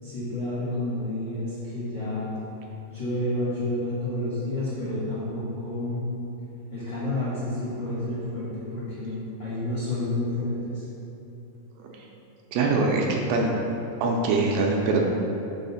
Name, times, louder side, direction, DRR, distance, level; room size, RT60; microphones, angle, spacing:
voice 1, 0.0-2.4 2.9-6.0 6.7-10.8, left 1 dB, 85° left, -11 dB, 1.0 m, -30 dB
voice 2, 12.5-13.6 14.0-15.0, right 3 dB, 80° right, 0 dB, 2.2 m, -23 dB
5.5 x 4.0 x 5.5 m, 2.8 s
omnidirectional pair, 4.3 m